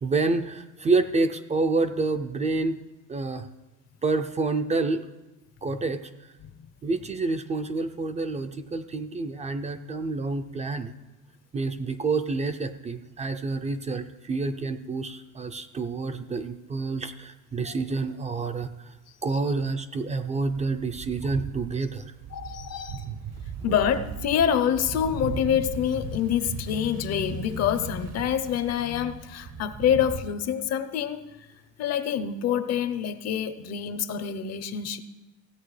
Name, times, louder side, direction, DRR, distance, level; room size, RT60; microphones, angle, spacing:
voice 1, 0.0-2.8 3.1-3.5 4.0-5.1 5.6-6.1 6.8-10.9 11.5-18.9 19.2-22.1, right 3 dB, 25° right, 8 dB, 0.4 m, -28 dB
sound 1, 20.5-30.2, right 7 dB, 60° right, 0.8 m, -38 dB
voice 2, 22.3-23.1 23.6-31.2 31.8-35.0, left 9 dB, 60° left, 12 dB, 0.7 m, -26 dB
16.5 x 8.2 x 3.2 m, 1.1 s
cardioid pair, 140°, 30 cm